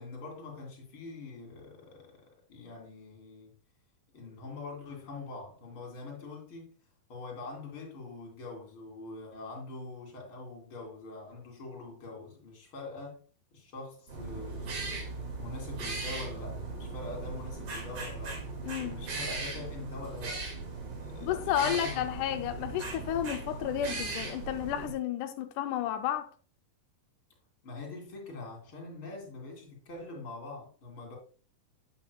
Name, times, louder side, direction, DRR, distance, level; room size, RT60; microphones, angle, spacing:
voice 1, 0.0-3.5 4.1-6.7 7.1-13.2 13.5-15.1 15.4-18.4 18.7-20.4 21.0-22.0 27.6-31.2, left 3 dB, 40° left, 3.2 m, -44 dB
sound 1, 14.1-24.9, right 3 dB, 70° right, 3.8 m, -38 dB
voice 2, 18.6-19.0 21.2-26.3, left 10 dB, 90° left, 1.8 m, -32 dB
8.3 x 8.3 x 2.3 m
omnidirectional pair, 4.1 m